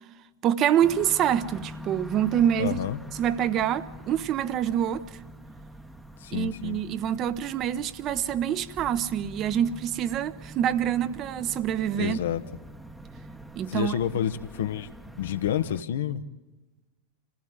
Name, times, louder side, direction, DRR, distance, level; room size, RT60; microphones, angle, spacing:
voice 1, 0.4-2.8 3.2-5.0 6.3-12.2 13.5-14.0, right 10 dB, 35° right, 1.0 m, -26 dB
sound 1, 0.8-15.8, equal, 5° right, 1.1 m, -44 dB
voice 2, 2.6-3.0 6.2-6.8 11.9-12.4 13.7-14.9 15.2-16.2, left 10 dB, 60° left, 1.1 m, -29 dB
27.0 x 15.5 x 9.3 m
figure-of-eight pair, 90°, 0 cm